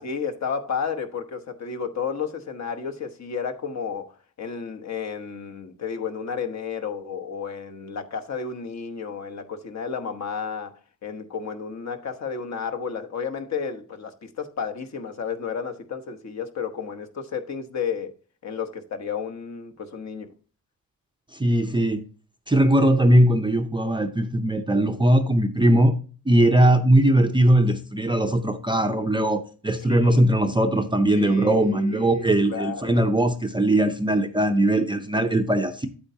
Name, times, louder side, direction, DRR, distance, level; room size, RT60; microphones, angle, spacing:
voice 1, 0.0-4.1 4.4-10.7 11.0-18.1 18.4-20.3 29.8-30.2 31.2-33.0, left 6 dB, 50° left, 1.1 m, -32 dB
voice 2, 21.3-22.0 22.5-26.0 26.3-35.9, right 1 dB, 15° right, 0.5 m, -20 dB
9.1 x 8.4 x 2.7 m
cardioid pair, 135°, 36 cm